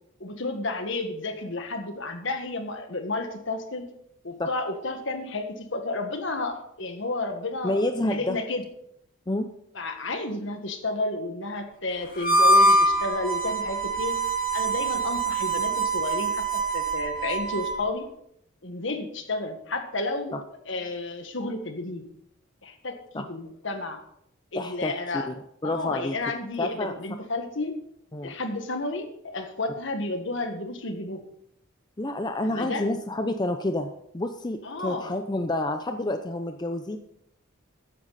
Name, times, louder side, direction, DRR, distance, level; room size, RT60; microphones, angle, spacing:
voice 1, 0.2-3.8 4.2-8.6 9.7-14.2 14.5-18.1 18.6-20.4 20.6-22.0 22.6-24.0 24.5-25.3 25.6-27.7 28.2-31.2 32.4-32.9 34.6-35.2, left 2 dB, 60° left, 6 dB, 1.7 m, -32 dB
voice 2, 7.6-8.4 9.3-9.5 20.3-20.4 23.1-23.2 24.5-25.3 25.6-26.1 26.6-26.9 28.1-28.3 32.0-37.0, left 1 dB, 20° left, 6 dB, 0.6 m, -29 dB
Harmonica, 12.1-17.8, right 2 dB, 45° left, 2.4 m, -24 dB
13.5 x 10.0 x 4.2 m, 0.74 s
head